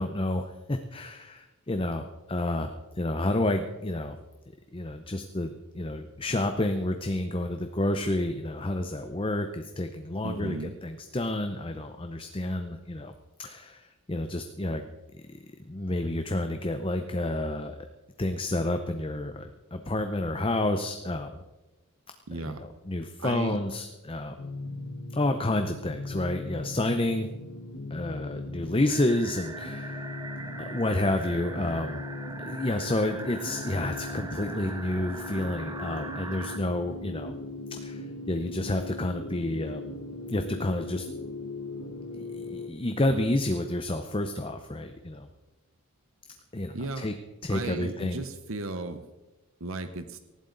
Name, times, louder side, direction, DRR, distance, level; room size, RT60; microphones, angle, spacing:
voice 1, 0.0-2.7 3.0-4.2 4.7-13.1 13.4-14.9 15.6-17.8 18.2-21.4 22.4-24.3 25.1-27.3 27.9-30.1 30.7-32.0 32.5-37.3 37.7-39.9 40.3-41.1 42.1-45.3 46.5-47.1 47.4-48.2, left 1 dB, 25° left, 7 dB, 0.7 m, -30 dB
voice 2, 10.2-10.8 22.3-22.6 23.2-23.6 46.7-47.1 47.5-49.0 49.6-50.2, right 2 dB, 65° right, 9 dB, 0.9 m, -35 dB
sound 1, 24.4-42.7, left 2 dB, 70° left, 1.4 m, -39 dB
sound 2, 28.9-36.6, right 2 dB, 15° right, 0.9 m, -41 dB
19.0 x 15.0 x 4.0 m, 1.1 s
head